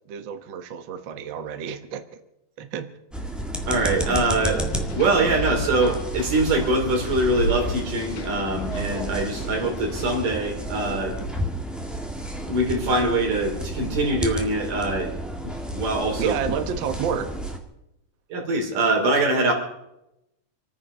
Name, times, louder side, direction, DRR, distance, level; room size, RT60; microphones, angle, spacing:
voice 1, 0.1-2.0 2.6-2.9 16.2-17.3, right 7 dB, 55° right, 8 dB, 1.3 m, -30 dB
sound 1, 3.1-17.6, right 1 dB, ahead, 0.8 m, -31 dB
voice 2, 3.6-4.6 4.9-11.2 12.5-15.1 15.4-16.4 18.3-19.5, right 2 dB, 85° right, 1 dB, 4.9 m, -23 dB
sound 2, 4.5-10.2, left 2 dB, 75° left, 3.0 m, -35 dB
27.0 x 9.6 x 5.5 m, 0.86 s
omnidirectional pair, 3.6 m